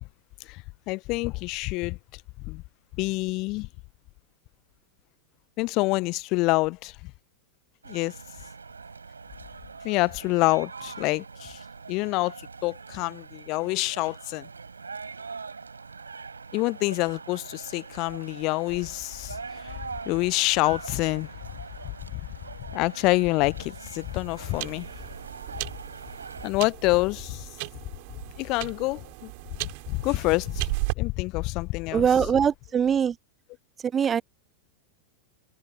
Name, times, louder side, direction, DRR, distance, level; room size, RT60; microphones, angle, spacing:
voice 1, 0.5-2.0 2.4-2.6 3.0-3.7 5.6-6.9 7.9-8.1 9.8-11.6 11.9-12.3 12.6-14.5 16.5-19.8 20.1-21.3 21.8-22.2 22.7-24.9 26.4-27.5 28.4-29.3 29.6-30.7 31.0-32.1, left 23 dB, 40° left, 0.8 m, -27 dB
sound 1, 7.8-26.5, right 4 dB, 75° right, 7.5 m, -42 dB
sound 2, 23.5-30.9, right 30 dB, 45° right, 4.1 m, -36 dB
voice 2, 31.9-33.2 33.9-34.2, right 7 dB, 20° right, 0.4 m, -22 dB
figure-of-eight pair, 90°, 0 cm